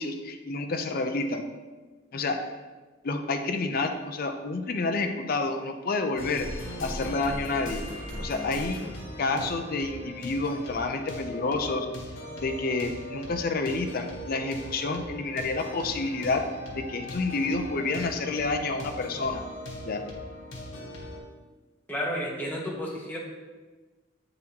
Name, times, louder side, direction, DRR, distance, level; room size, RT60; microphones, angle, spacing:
voice 1, 0.0-1.5 2.1-2.5 3.0-6.5 6.8-7.8 8.2-8.8 9.2-11.9 12.4-16.5 16.7-19.4 19.8-20.1, left 3 dB, 50° left, 6 dB, 0.5 m, -29 dB
sound 1, 6.2-21.2, left 1 dB, 85° left, 1.1 m, -39 dB
voice 2, 21.9-23.2, equal, 10° left, -3 dB, 1.0 m, -31 dB
8.5 x 4.0 x 2.9 m, 1.3 s
head